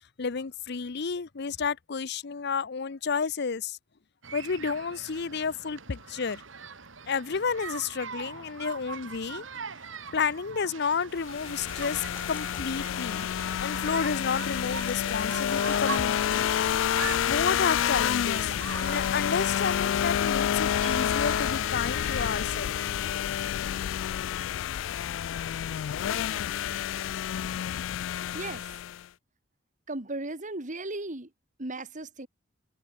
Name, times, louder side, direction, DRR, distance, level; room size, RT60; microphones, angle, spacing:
voice 1, 0.2-3.8 4.3-6.4 7.1-9.4 10.1-13.3 13.6-16.5 17.3-22.7, left 5 dB, 60° left, 0.7 m, -31 dB
sound 1, 4.2-23.0, right 5 dB, 90° right, 2.4 m, -42 dB
sound 2, 11.2-29.1, left 10 dB, 75° left, 0.3 m, -29 dB
sound 3, 11.5-13.3 14.7-17.0 18.4-20.0, left 2 dB, 10° left, 2.7 m, -50 dB
voice 2, 28.3-28.7 29.9-31.3 31.6-32.3, right 2 dB, 40° right, 2.3 m, -36 dB
head